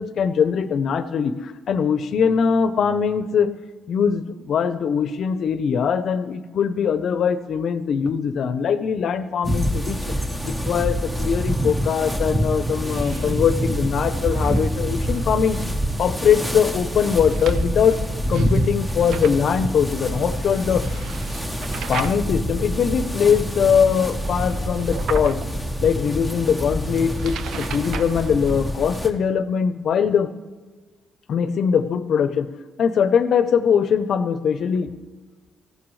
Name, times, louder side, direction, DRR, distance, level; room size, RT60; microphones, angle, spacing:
voice 1, 0.0-3.5 3.9-10.1 10.4-15.6 16.0-18.0 18.3-21.0 21.9-25.4 25.8-30.3 31.3-32.5 32.8-34.9, left 7 dB, 65° left, 12 dB, 0.8 m, -21 dB
sound 1, 9.4-29.1, equal, 10° right, 1.4 m, -26 dB
sound 2, 11.9-28.9, right 7 dB, 75° right, 0.6 m, -40 dB
18.0 x 15.0 x 3.3 m, 1.3 s
cardioid pair, 90°, 0 cm